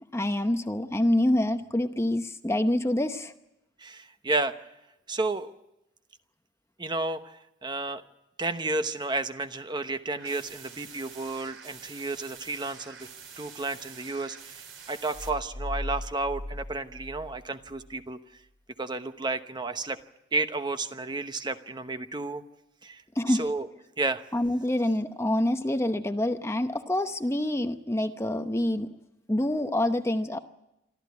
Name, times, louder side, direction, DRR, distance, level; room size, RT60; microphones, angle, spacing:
voice 1, 0.1-3.3 23.2-23.5 24.3-28.9 29.3-30.4, left 1 dB, 15° left, 8 dB, 0.9 m, -26 dB
voice 2, 3.8-4.5 5.1-5.5 6.8-7.3 7.6-8.0 8.4-13.1 13.4-18.2 18.8-20.0 20.3-22.4 22.8-23.0 23.3-23.7 24.0-24.2, right 3 dB, 25° right, 9 dB, 1.0 m, -31 dB
sound 1, 10.1-15.3, right 7 dB, 75° right, 3.5 m, -47 dB
sound 2, 15.1-18.0, left 1 dB, 60° left, 1.5 m, -38 dB
25.5 x 13.5 x 9.5 m, 0.89 s
head